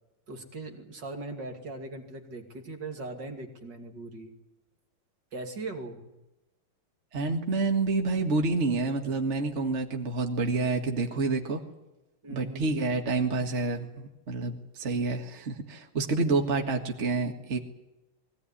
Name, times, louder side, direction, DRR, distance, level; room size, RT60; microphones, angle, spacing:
voice 1, 0.3-4.3 5.3-6.1 12.2-12.7, right 2 dB, 50° right, 4 dB, 3.2 m, -40 dB
voice 2, 7.1-11.6 12.3-17.6, right 3 dB, 35° right, 3 dB, 2.0 m, -28 dB
22.0 x 17.5 x 9.8 m, 0.99 s
omnidirectional pair, 2.4 m